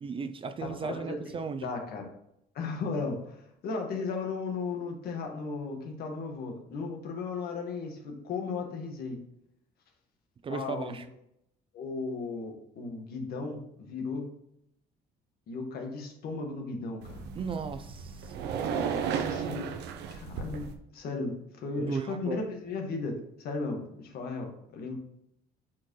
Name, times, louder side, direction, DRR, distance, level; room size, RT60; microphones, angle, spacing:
voice 1, 0.0-1.7 10.4-11.1 17.3-18.5 21.8-22.4, right 5 dB, 30° right, 0.5 m, -36 dB
voice 2, 0.6-1.2 1.6-2.1 2.5-9.2 10.5-10.9 11.7-14.2 15.5-17.2 19.0-19.7 20.1-20.7 20.9-24.9, left 4 dB, 65° left, 1.7 m, -35 dB
sound 1, 17.0-20.7, right 6 dB, 80° right, 0.8 m, -34 dB
8.3 x 4.4 x 3.2 m
cardioid pair, 110°, 17 cm